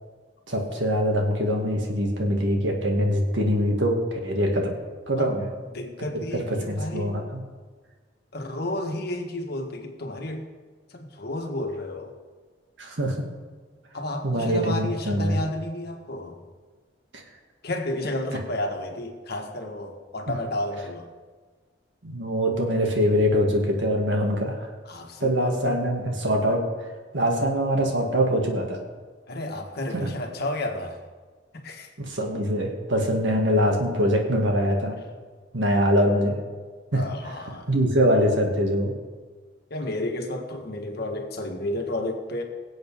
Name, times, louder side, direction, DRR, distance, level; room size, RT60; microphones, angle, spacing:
voice 1, 0.5-4.8 5.1-5.5 6.3-7.4 12.8-13.2 14.2-15.4 17.1-17.2 22.0-24.7 25.2-26.6 27.1-28.8 29.9-30.1 32.0-35.0 35.5-36.4 36.9-37.0 37.7-38.9, equal, 85° right, 1 dB, 2.1 m, -23 dB
voice 2, 5.7-7.2 8.3-10.5 10.9-12.1 13.9-16.4 17.6-21.1 24.8-25.8 29.3-31.0 31.5-31.9 35.7-35.9 36.9-37.7 39.7-42.4, left 1 dB, 60° left, 3 dB, 1.6 m, -32 dB
23.0 x 7.8 x 3.7 m, 1.4 s
head